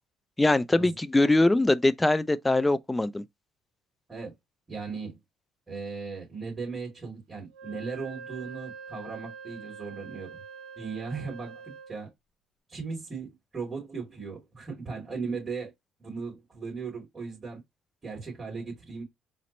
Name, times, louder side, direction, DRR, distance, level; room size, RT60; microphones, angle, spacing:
voice 1, 0.4-3.2, left 2 dB, 15° left, 0.4 m, -22 dB
voice 2, 4.7-5.2 5.7-10.3 10.8-12.1 12.7-15.7 16.0-17.6 18.0-19.0, right 4 dB, 30° right, 2.5 m, -37 dB
Wind instrument woodwind instrument, 7.5-12.0, right 6 dB, 80° right, 0.7 m, -44 dB
4.2 x 2.1 x 4.0 m
supercardioid pair, 80°, 0 cm